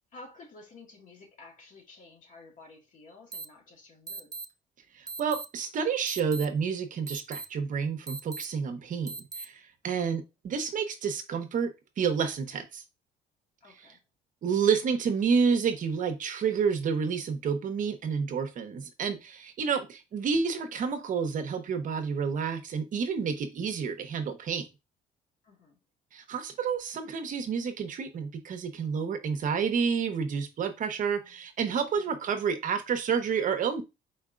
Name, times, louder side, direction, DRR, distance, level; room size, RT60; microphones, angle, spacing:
voice 1, 0.1-4.3 9.8-10.2 13.6-14.0 25.4-25.8 30.9-31.4 32.1-32.2, left 3 dB, 50° left, 2.0 m, -52 dB
sound 1, 3.3-3.4 4.1-4.4 5.1-5.4 6.1-6.4 7.1-7.4 8.1-8.4 9.1-9.4, right 4 dB, 20° right, 0.5 m, -38 dB
voice 2, 4.9-11.7 12.0-12.8 13.8-13.9 14.4-24.7 26.1-33.8, right 6 dB, 50° right, 0.9 m, -29 dB
4.5 x 4.4 x 2.5 m
cardioid pair, 110°, 17 cm